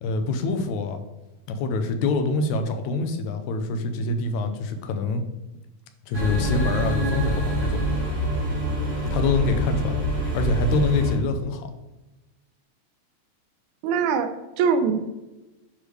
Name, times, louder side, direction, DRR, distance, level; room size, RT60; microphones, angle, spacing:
voice 1, 0.0-1.0 1.5-5.2 6.1-7.8 9.1-10.0 10.3-11.7, left 3 dB, 80° left, 7 dB, 2.0 m, -25 dB
sound 1, 6.1-11.1, right 1 dB, 30° right, 0.9 m, -25 dB
voice 2, 13.8-15.0, right 6 dB, 85° right, 8 dB, 2.0 m, -23 dB
9.6 x 3.7 x 3.2 m, 1.0 s
omnidirectional pair, 3.4 m